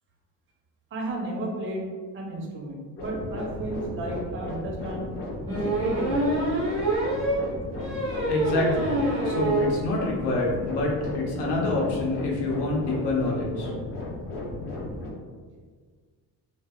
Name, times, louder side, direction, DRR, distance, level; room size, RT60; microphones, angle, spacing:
voice 1, 0.9-1.9 2.1-5.0 5.4-6.3, right 1 dB, 30° right, -1 dB, 0.4 m, -33 dB
sound 1, 3.0-15.1, left 2 dB, 35° left, 0.4 m, -35 dB
sound 2, 3.7-3.8 4.2-4.3 5.5-9.8 10.1-10.2 10.5-10.6 10.8-11.0, right 1 dB, 10° left, 0.7 m, -26 dB
voice 2, 8.3-9.0 9.2-13.7, left 2 dB, 75° left, -2 dB, 0.7 m, -26 dB
2.1 x 2.0 x 3.4 m, 1.6 s
cardioid pair, 165°, 41 cm